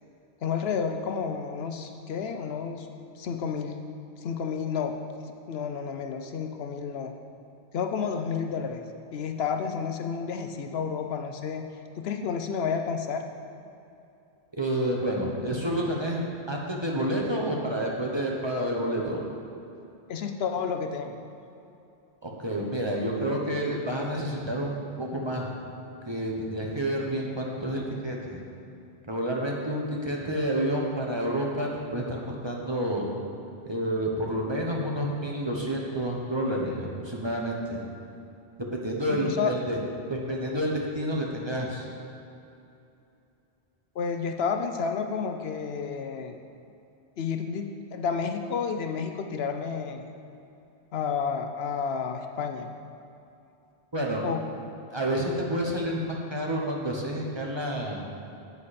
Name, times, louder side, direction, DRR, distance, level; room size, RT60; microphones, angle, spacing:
voice 1, 0.4-2.9 3.2-3.8 4.2-4.9 5.5-7.1 7.7-8.8 9.1-11.6 12.0-13.2 20.1-21.2 39.1-39.6 44.0-46.4 47.2-50.1 50.9-52.7 54.2-54.4, left 6 dB, 70° left, 5 dB, 0.8 m, -30 dB
voice 2, 14.6-19.2 22.2-25.5 26.1-28.4 29.1-33.1 33.6-37.8 38.7-39.8 40.1-41.9 53.9-54.3 54.9-58.0, right 1 dB, 25° right, -1 dB, 1.1 m, -29 dB
10.0 x 8.2 x 4.2 m, 2.7 s
omnidirectional pair, 1.1 m